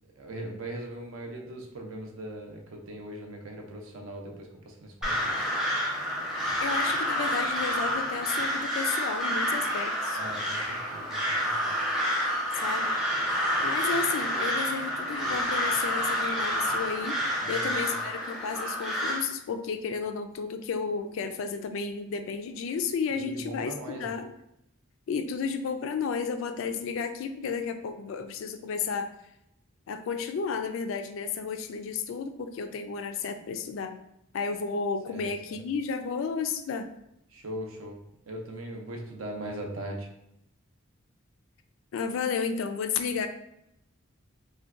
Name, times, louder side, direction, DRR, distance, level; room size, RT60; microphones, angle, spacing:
voice 1, 0.2-5.5 10.1-11.8 17.4-18.0 23.2-24.2 35.1-35.6 37.3-38.0 38.3-40.1, right 1 dB, 80° right, 2 dB, 0.5 m, -40 dB
Crow, 5.0-19.2, equal, 5° right, 0.5 m, -29 dB
voice 2, 6.6-10.2 12.6-12.9 13.6-24.3 25.1-29.1 29.9-34.0 34.3-36.9 41.9-43.3, left 5 dB, 75° left, 7 dB, 0.3 m, -32 dB
3.7 x 2.2 x 2.4 m, 0.81 s
head